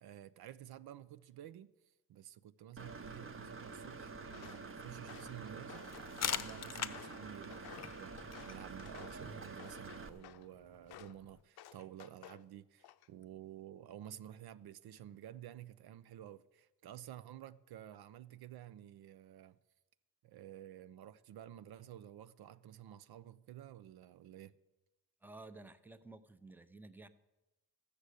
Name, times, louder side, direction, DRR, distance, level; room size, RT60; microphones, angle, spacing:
voice 1, 0.0-1.7 2.1-19.6 20.2-24.6, right 11 dB, 75° right, 0.6 m, -52 dB
Engine / Mechanisms, 2.8-10.1, right 4 dB, 35° right, 0.9 m, -48 dB
Walk footsteps, 4.3-4.7 5.0-6.5 6.9-9.3 9.6-10.5 10.9-11.2 11.6-12.4 12.8-13.2, left 13 dB, 80° left, 0.6 m, -55 dB
sound 1, 5.9-11.4, left 8 dB, 45° left, 0.7 m, -44 dB
voice 2, 25.2-27.1, right 2 dB, 5° right, 0.7 m, -53 dB
13.5 x 6.7 x 8.3 m
cardioid pair, 85°, 38 cm